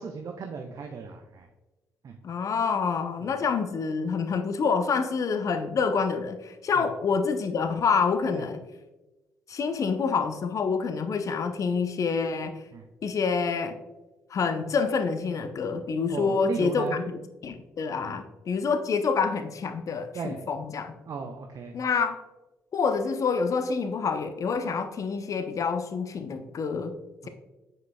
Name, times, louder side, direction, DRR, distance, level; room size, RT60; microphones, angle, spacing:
voice 1, 0.0-1.5 2.0-2.2 3.2-3.3 6.8-6.9 8.3-8.4 12.7-12.8 16.1-17.0 18.0-18.1 20.1-20.4 21.1-21.7 27.2-27.3, right 5 dB, 45° right, 4 dB, 0.6 m, -36 dB
voice 2, 2.2-8.6 9.5-12.5 13.0-13.7 14.3-17.0 17.4-20.9 21.7-22.2 22.7-26.9, left 5 dB, 40° left, 9 dB, 0.6 m, -27 dB
7.4 x 6.0 x 2.2 m, 1.1 s
figure-of-eight pair, 45°, 8 cm